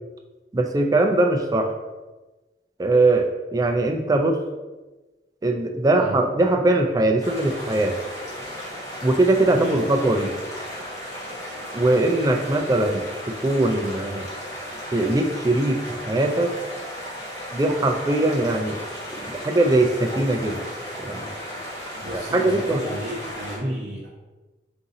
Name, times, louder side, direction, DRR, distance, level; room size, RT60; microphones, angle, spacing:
voice 1, 0.5-1.7 2.8-4.4 5.4-7.9 9.0-10.3 11.7-14.2 14.9-16.5 17.5-18.8 19.1-20.6 21.0-21.3 22.1-22.8 23.6-23.7, right 2 dB, 20° right, 4 dB, 0.3 m, -21 dB
voice 2, 5.9-6.3 9.5-9.9 12.4-12.6 21.9-24.1, right 1 dB, 80° right, -4 dB, 0.7 m, -34 dB
sound 1, 7.2-23.6, equal, 20° left, 1.0 m, -35 dB
3.7 x 2.7 x 4.0 m, 1.2 s
head